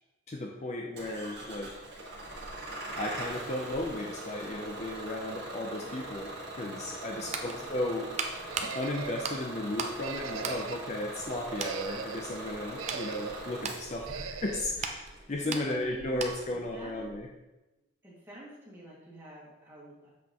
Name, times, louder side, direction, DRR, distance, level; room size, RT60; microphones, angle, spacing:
voice 1, 0.3-1.7 3.0-8.1 8.6-17.3, left 1 dB, 35° left, 1 dB, 0.5 m, -35 dB
Bus / Engine starting, 1.0-17.2, right 1 dB, 55° right, 1.7 m, -42 dB
voice 2, 7.2-7.8 15.2-17.0 18.0-20.1, right 1 dB, 10° right, -7 dB, 2.0 m, -47 dB
sound 1, 7.3-10.0 10.3-11.3 11.6-11.8 12.4-16.6 16.9-17.1, right 5 dB, 35° right, 0.5 m, -39 dB
sound 2, 8.5-9.4 10.0-10.9 11.4-12.3 12.8-13.5 14.1-14.7, right 7 dB, 85° right, 0.4 m, -40 dB
7.3 x 5.9 x 2.9 m, 1.0 s
head